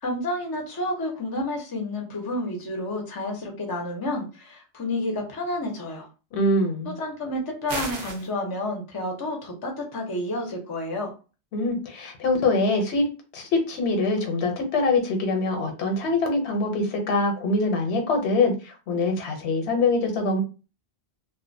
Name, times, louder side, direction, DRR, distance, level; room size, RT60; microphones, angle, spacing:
voice 1, 0.0-6.1 6.8-11.1, left 1 dB, 30° left, 1 dB, 0.4 m, -30 dB
voice 2, 6.3-6.9 11.5-13.1 13.3-20.4, left 2 dB, 85° left, 4 dB, 0.9 m, -24 dB
sound 1, 7.7-8.3, right 3 dB, 55° right, 0.5 m, -32 dB
2.4 x 2.1 x 2.5 m, 0.33 s
omnidirectional pair, 1.1 m